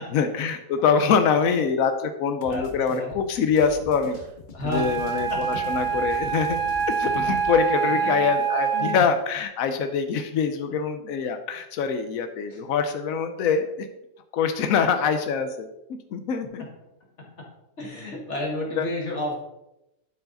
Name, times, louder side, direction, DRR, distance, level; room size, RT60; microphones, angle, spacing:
voice 1, 0.1-4.2 4.6-5.3 5.7-6.6 6.9-13.9 14.3-15.7 16.1-16.6 18.8-18.9, left 6 dB, 85° left, 8 dB, 1.1 m, -24 dB
sound 1, 2.4-7.6, left 4 dB, 40° left, 0.9 m, -42 dB
voice 2, 2.5-3.2 4.5-5.6 7.8-8.3 8.7-9.1 10.7-10.8 12.5-12.6 16.6-16.7 17.2-17.5 17.8-19.3, left 2 dB, 55° left, -2 dB, 2.3 m, -32 dB
Wind instrument woodwind instrument, 4.7-9.3, right 7 dB, 75° right, 1.1 m, -26 dB
11.5 x 4.7 x 3.9 m, 0.90 s
omnidirectional pair, 1.4 m